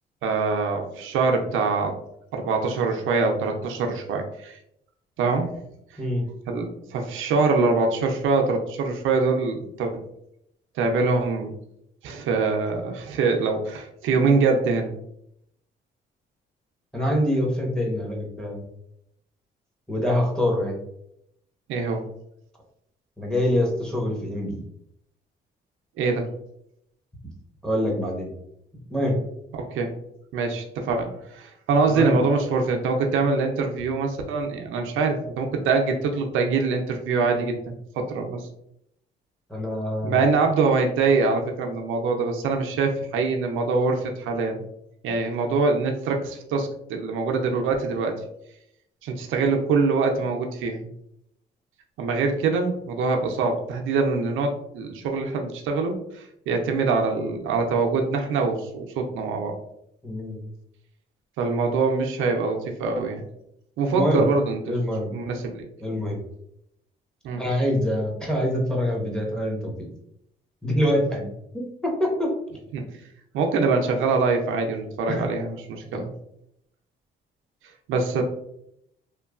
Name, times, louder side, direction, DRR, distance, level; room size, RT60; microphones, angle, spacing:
voice 1, 0.2-1.9 2.3-4.6 5.2-5.5 6.5-10.0 10.8-11.5 12.0-14.9 21.7-22.0 26.0-26.3 29.5-29.9 30.3-38.5 40.0-44.6 45.0-48.2 49.0-50.9 52.0-59.6 61.4-63.2 63.8-64.8 65.1-65.7 67.2-67.4 72.7-72.8 73.3-76.1 77.9-78.2, right 4 dB, 85° right, 3 dB, 0.5 m, -24 dB
voice 2, 16.9-18.7 19.9-20.8 23.2-24.6 27.6-28.3 28.9-29.2 31.9-32.2 39.5-40.3 60.0-60.4 63.9-64.3 64.7-65.1 65.8-66.2 67.4-69.7 70.6-71.3 71.5-72.4 75.1-75.3 75.9-76.0, equal, 5° left, -2 dB, 0.9 m, -25 dB
3.0 x 2.2 x 2.4 m, 0.75 s
cardioid pair, 90°, 20 cm